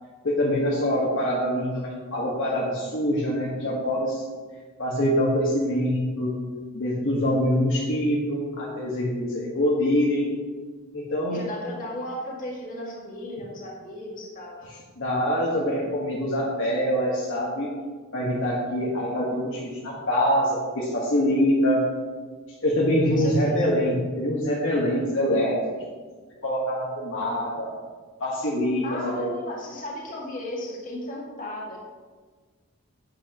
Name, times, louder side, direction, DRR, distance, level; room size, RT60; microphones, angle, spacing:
voice 1, 0.2-4.2 4.8-6.4 6.7-10.3 10.9-11.4 15.0-17.7 18.1-21.8 22.6-25.6 26.4-27.7 28.2-28.8 29.2-29.3, equal, 60° left, -5 dB, 1.6 m, -24 dB
voice 2, 11.3-14.7 23.1-23.5 28.8-31.8, left 1 dB, 40° left, -3 dB, 2.1 m, -35 dB
10.5 x 8.2 x 3.1 m, 1.4 s
head